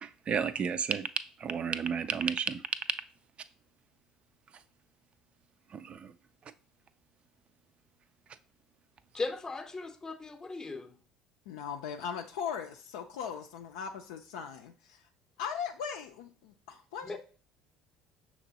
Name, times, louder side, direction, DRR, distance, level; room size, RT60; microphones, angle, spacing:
voice 1, 0.0-1.1 1.4-2.6 5.7-6.0, right 6 dB, 40° right, 0.4 m, -32 dB
voice 2, 9.1-11.0 17.0-17.2, left 3 dB, 20° left, 0.6 m, -37 dB
voice 3, 11.5-15.1 15.4-17.2, left 7 dB, 75° left, 0.4 m, -39 dB
5.9 x 3.0 x 2.8 m
hypercardioid pair, 65°, 3 cm